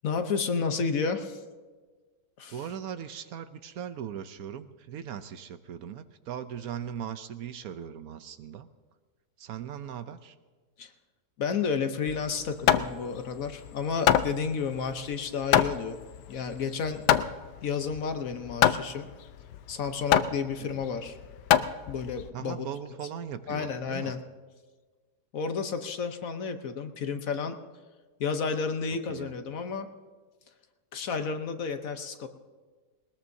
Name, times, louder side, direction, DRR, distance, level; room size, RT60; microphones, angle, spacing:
voice 1, 0.0-1.4 2.4-2.6 10.8-10.9 11.4-16.0 16.3-17.0 17.6-19.1 19.7-21.2 21.9-22.7 23.5-24.2 25.3-27.6 28.2-29.9 30.9-32.3, left 5 dB, 60° left, 8 dB, 1.2 m, -31 dB
voice 2, 2.5-8.7 9.4-10.3 20.6-20.8 22.3-24.1 29.1-29.3, right 9 dB, 70° right, 11 dB, 1.0 m, -39 dB
Hammer, 12.1-22.3, left 11 dB, 90° left, 1.2 m, -26 dB
20.0 x 20.0 x 2.7 m, 1.4 s
omnidirectional pair, 1.7 m